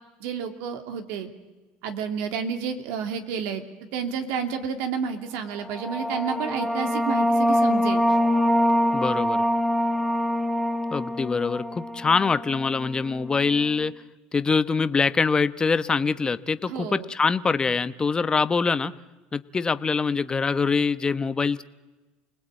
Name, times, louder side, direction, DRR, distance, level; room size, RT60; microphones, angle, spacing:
voice 1, 0.2-1.3 1.8-3.6 3.9-8.0 16.6-17.1, right 6 dB, 75° right, 6 dB, 2.7 m, -30 dB
sound 1, 5.6-12.8, equal, ahead, 1.3 m, -24 dB
voice 2, 8.9-9.4 10.9-13.9 14.3-18.9 19.3-21.6, left 4 dB, 20° left, 13 dB, 0.9 m, -24 dB
29.0 x 19.5 x 8.8 m, 1.2 s
supercardioid pair, 110°, 4 cm